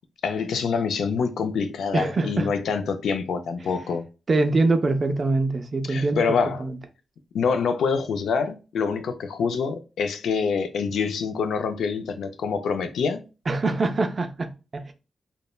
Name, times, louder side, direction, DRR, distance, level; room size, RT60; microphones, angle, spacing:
voice 1, 0.2-4.1 5.9-6.7 7.3-13.2, left 5 dB, 90° left, 0.4 m, -26 dB
voice 2, 1.9-2.5 4.3-6.8 13.5-14.9, right 3 dB, 35° right, 0.4 m, -24 dB
3.0 x 2.1 x 2.2 m
wide cardioid pair, 145°, 0 cm